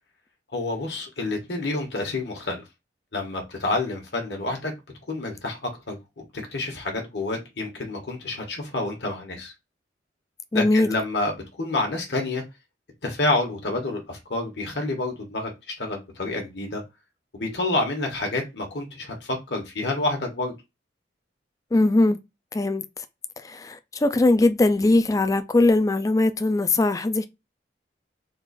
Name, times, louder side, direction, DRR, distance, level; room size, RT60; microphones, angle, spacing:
voice 1, 0.5-2.6 3.1-4.7 5.1-6.0 6.5-9.5 10.5-11.3 11.6-12.4 13.0-16.8 17.3-20.5, left 2 dB, 70° left, 1.2 m, -28 dB
voice 2, 10.5-10.9 21.7-22.2 22.5-22.8 23.4-27.3, left 2 dB, 20° left, 0.3 m, -20 dB
3.7 x 2.5 x 3.9 m
head